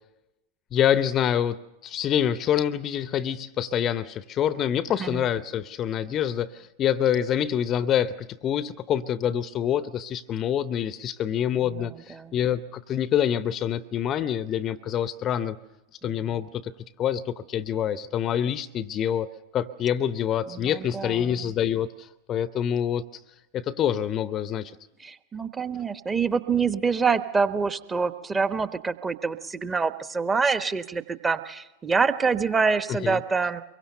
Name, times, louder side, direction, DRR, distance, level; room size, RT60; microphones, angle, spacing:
voice 1, 0.7-15.6 16.0-16.7 17.0-23.0 23.5-24.7 32.9-33.2, left 9 dB, 30° left, 17 dB, 0.7 m, -26 dB
voice 2, 11.6-12.4 16.0-16.4 20.5-21.5 25.0-33.6, right 5 dB, 15° right, 12 dB, 1.1 m, -26 dB
24.5 x 22.5 x 6.8 m, 0.95 s
figure-of-eight pair, 90°, 0 cm